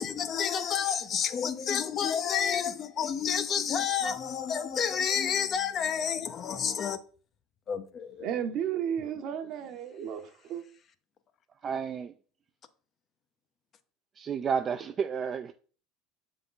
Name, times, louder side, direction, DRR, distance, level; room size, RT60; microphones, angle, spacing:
voice 1, 0.0-7.0 7.7-8.3, left 7 dB, 40° left, 0.6 m, -30 dB
voice 2, 8.2-10.6, right 9 dB, 55° right, 0.8 m, -33 dB
voice 3, 11.6-12.1 14.2-15.5, right 7 dB, 35° right, 0.3 m, -31 dB
6.8 x 3.7 x 3.8 m
supercardioid pair, 100°, 0 cm